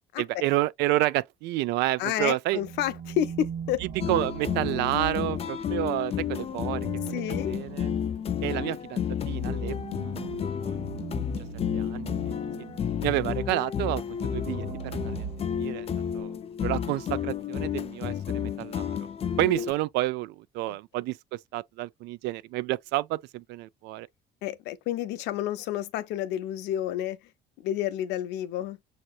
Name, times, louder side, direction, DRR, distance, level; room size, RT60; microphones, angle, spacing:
voice 1, 0.2-2.6 3.8-7.2 7.5-7.9 8.4-9.8 10.5-10.8 11.7-12.4 13.0-15.3 15.6-15.9 16.1-19.1 19.4-24.1, right 16 dB, 90° right, 0.4 m, -30 dB
voice 2, 2.0-3.8 7.1-7.5 24.4-27.2 27.6-28.8, left 11 dB, 90° left, 0.6 m, -30 dB
sound 1, 2.5-5.8 6.5-13.1 14.1-16.0, right 8 dB, 45° right, 1.2 m, -40 dB
sound 2, 4.0-19.7, left 8 dB, 35° left, 0.4 m, -31 dB
6.4 x 2.9 x 2.3 m
cardioid pair, 110°, 17 cm